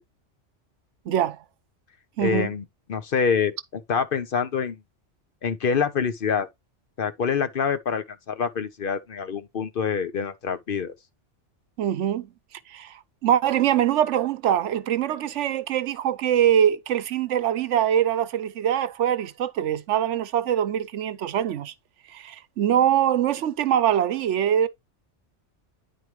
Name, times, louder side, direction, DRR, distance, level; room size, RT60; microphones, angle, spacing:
voice 1, 1.1-1.4 2.2-2.5 11.8-12.3 12.7-21.7 22.1-24.7, right 10 dB, 85° right, 1.0 m, -23 dB
voice 2, 2.2-2.6 2.9-4.8 5.4-6.5 7.0-10.9, left 6 dB, 55° left, 0.9 m, -26 dB
9.5 x 4.6 x 3.0 m
omnidirectional pair, 1.2 m